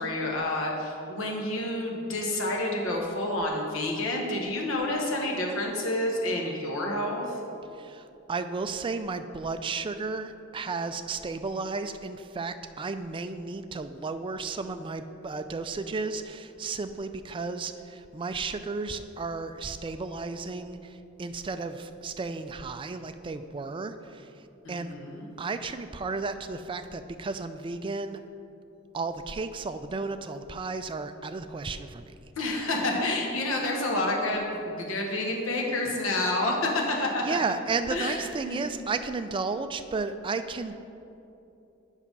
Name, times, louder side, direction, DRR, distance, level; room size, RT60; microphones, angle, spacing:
voice 1, 0.0-7.4 24.6-25.3 32.4-37.4 37.9-38.7, left 1 dB, 75° left, 0 dB, 1.2 m, -29 dB
voice 2, 7.7-24.9 25.4-28.2 28.9-32.3 37.2-40.7, right 4 dB, 25° right, 9 dB, 0.3 m, -33 dB
7.3 x 5.6 x 5.4 m, 2.8 s
head